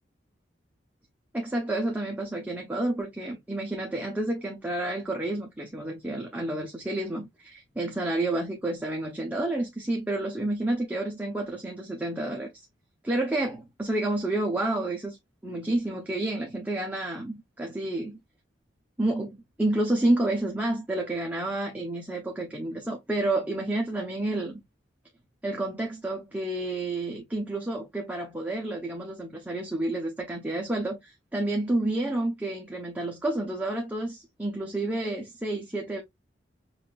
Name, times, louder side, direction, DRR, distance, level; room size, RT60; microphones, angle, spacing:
voice 1, 1.3-12.5 13.0-15.2 15.4-18.2 19.0-24.6 25.4-36.0, right 2 dB, 10° right, 0.7 m, -30 dB
5.6 x 2.5 x 2.4 m
head